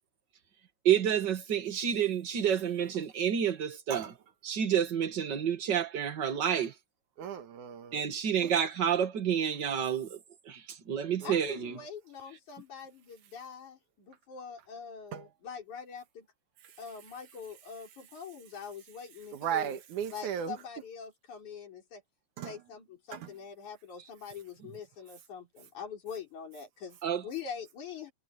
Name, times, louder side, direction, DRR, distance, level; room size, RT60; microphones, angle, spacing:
voice 1, 0.8-4.1 4.4-6.7 7.9-10.2 10.5-11.8 27.0-27.2, right 9 dB, 40° right, 2.1 m, -29 dB
voice 2, 7.2-8.1 8.4-8.5 11.2-11.3 15.1-15.3 19.3-20.6 22.4-22.6 23.1-23.3, right 9 dB, 85° right, 3.0 m, -36 dB
voice 3, 11.2-16.3 16.8-19.8 20.1-22.0 22.4-27.0 27.2-28.1, left 6 dB, 75° left, 6.2 m, -44 dB
omnidirectional pair, 3.4 m